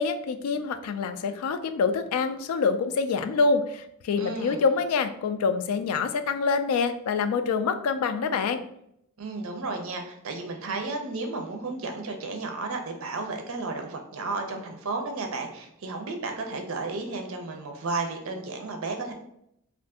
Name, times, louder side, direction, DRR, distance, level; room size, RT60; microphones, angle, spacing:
voice 1, 0.0-8.6, left 5 dB, 85° left, 10 dB, 0.3 m, -26 dB
voice 2, 4.2-4.6 9.2-19.1, right 3 dB, 70° right, 4 dB, 0.6 m, -33 dB
2.6 x 2.4 x 3.5 m, 0.75 s
head